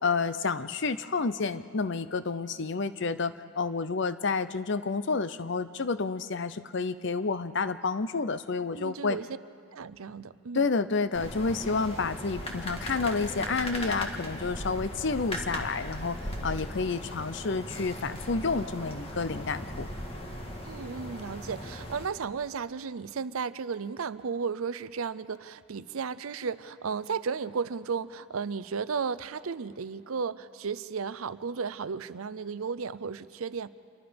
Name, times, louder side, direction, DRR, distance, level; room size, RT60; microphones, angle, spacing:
voice 1, 0.0-9.2 10.5-16.2 16.4-19.9, left 4 dB, 55° left, 14 dB, 0.6 m, -30 dB
voice 2, 8.8-9.3 9.7-10.7 20.6-33.7, right 5 dB, 75° right, 15 dB, 0.5 m, -34 dB
sound 1, 11.1-22.1, equal, 25° left, 1.8 m, -38 dB
27.5 x 22.5 x 5.2 m, 2.3 s
head